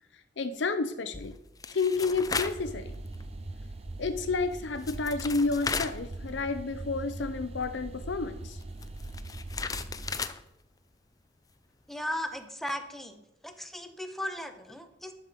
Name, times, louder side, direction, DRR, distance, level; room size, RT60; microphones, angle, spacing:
voice 1, 0.4-1.3 1.7-2.9 4.0-8.6, left 3 dB, 80° left, 10 dB, 0.6 m, -30 dB
sound 1, 1.1-2.7 3.1-3.2 4.5-4.6 4.8-6.7 6.9-7.0 8.6-10.4, left 4 dB, 20° left, 0.5 m, -36 dB
sound 2, 2.3-10.2, right 2 dB, 35° right, 0.6 m, -41 dB
voice 2, 11.9-15.1, left 1 dB, ahead, 6 dB, 0.9 m, -37 dB
11.0 x 7.0 x 5.1 m, 0.86 s
head